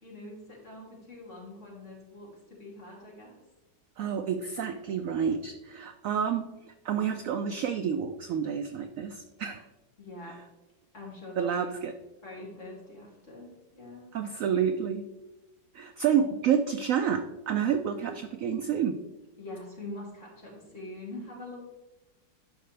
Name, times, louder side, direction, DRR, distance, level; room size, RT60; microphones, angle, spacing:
voice 1, 0.0-3.4 10.0-10.4 10.9-11.8 12.2-14.1 16.2-16.3 19.4-21.7, left 2 dB, 40° left, -4 dB, 2.9 m, -44 dB
voice 2, 4.0-6.5 6.8-9.6 11.4-11.9 14.1-15.0 15.7-19.0, right 8 dB, 75° right, 8 dB, 0.7 m, -29 dB
11.5 x 5.5 x 3.3 m, 1.0 s
omnidirectional pair, 1.9 m